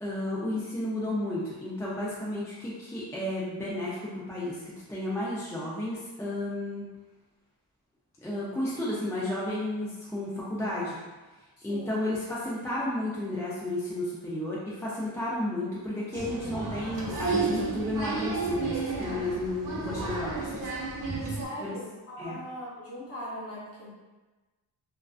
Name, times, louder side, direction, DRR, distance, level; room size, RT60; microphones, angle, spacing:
voice 1, 0.0-6.8 8.2-11.0 11.6-20.7 21.6-21.8 22.2-22.4, left 1 dB, 5° left, -7 dB, 0.3 m, -32 dB
voice 2, 11.6-12.0 21.3-23.9, equal, 35° left, -6 dB, 0.8 m, -40 dB
Applause, 16.1-21.5, right 4 dB, 50° right, 0.7 m, -32 dB
2.4 x 2.3 x 2.3 m, 1.2 s
wide cardioid pair, 115°, 43 cm